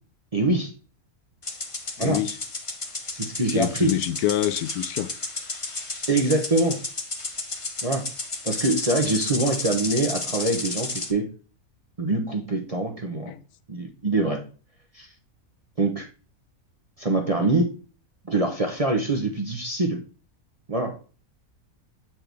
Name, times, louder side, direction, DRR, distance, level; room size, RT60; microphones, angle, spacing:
voice 1, 0.3-0.7 2.0-2.2 3.1-3.9 6.1-6.8 7.8-8.0 8.4-11.3 12.0-13.3 13.7-14.4 14.9-15.1 15.8-16.1 17.0-17.7 18.3-20.0 20.7-21.0, right 2 dB, 35° right, 0.7 m, -24 dB
sound 1, 1.4-11.1, left 3 dB, 25° left, 0.8 m, -32 dB
voice 2, 2.0-2.4 3.5-5.1 13.3-13.4, left 12 dB, 80° left, 1.1 m, -26 dB
7.6 x 4.4 x 3.3 m
omnidirectional pair, 1.6 m